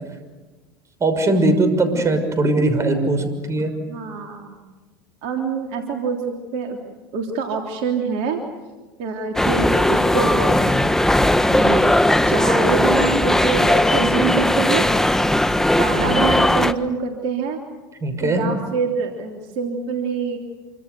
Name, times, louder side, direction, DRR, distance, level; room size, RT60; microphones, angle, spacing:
voice 1, 1.0-3.7 16.0-16.1 18.0-18.4, right 2 dB, 25° right, 8 dB, 6.3 m, -20 dB
voice 2, 3.9-4.6 5.2-6.8 7.1-8.4 9.0-10.8 11.2-12.0 12.3-14.9 15.8-17.6 18.2-20.4, right 5 dB, 60° right, 3 dB, 3.4 m, -25 dB
sound 1, 9.4-16.7, left 1 dB, 5° left, 1.3 m, -18 dB
27.5 x 25.5 x 6.9 m, 1.2 s
hypercardioid pair, 90°, 11 cm